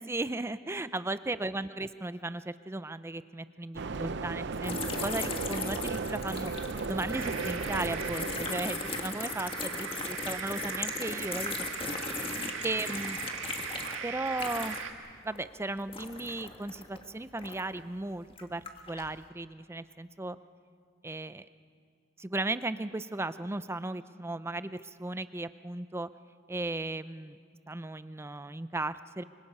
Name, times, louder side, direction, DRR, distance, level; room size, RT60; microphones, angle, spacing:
voice 1, 0.0-6.5 6.9-11.7 12.6-13.2 14.0-14.8 15.2-20.4 21.0-21.5 22.2-26.1 26.5-27.4 27.7-29.2, right 2 dB, 15° right, 13 dB, 0.5 m, -36 dB
sound 1, 3.8-9.3, right 4 dB, 60° right, 0.7 m, -36 dB
sound 2, 4.6-15.0 15.3-17.8 18.3-19.1, left 3 dB, 30° left, 1.6 m, -38 dB
sound 3, 7.1-14.9, right 5 dB, 85° right, 1.7 m, -39 dB
25.5 x 25.0 x 5.5 m, 2.1 s
head